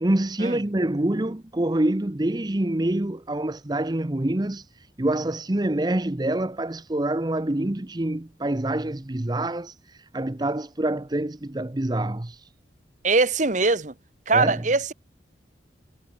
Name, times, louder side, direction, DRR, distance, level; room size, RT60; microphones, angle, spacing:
voice 1, 0.0-12.5 14.3-14.6, right 1 dB, 20° right, 0.7 m, -26 dB
voice 2, 13.0-13.9 14.3-14.9, right 3 dB, 40° right, 1.3 m, -22 dB
head